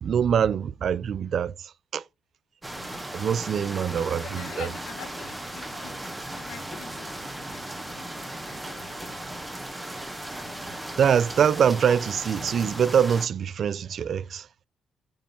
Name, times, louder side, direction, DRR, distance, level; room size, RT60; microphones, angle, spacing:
voice 1, 0.0-2.0 3.1-4.7 11.0-14.5, right 8 dB, 60° right, 0.3 m, -24 dB
sound 1, 2.6-13.3, right 1 dB, 10° right, 1.4 m, -37 dB
voice 2, 3.9-7.1 7.4-9.2, left 10 dB, 85° left, 1.1 m, -46 dB
8.7 x 3.1 x 5.6 m
cardioid pair, 90°, 0 cm